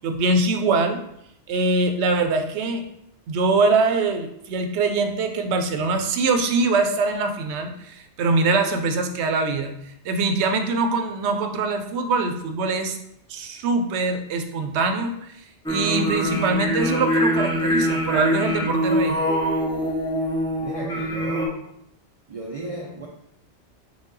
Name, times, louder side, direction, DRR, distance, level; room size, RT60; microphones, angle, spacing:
voice 1, 0.0-1.0 1.5-2.8 3.3-9.7 10.0-13.0 13.3-19.2, right 3 dB, 85° right, 6 dB, 0.9 m, -23 dB
sound 1, 15.7-21.5, equal, 5° left, 0.4 m, -24 dB
voice 2, 20.6-21.7 22.3-23.1, right 2 dB, 65° right, 0 dB, 0.3 m, -34 dB
4.9 x 2.3 x 3.8 m, 0.75 s
omnidirectional pair, 1.1 m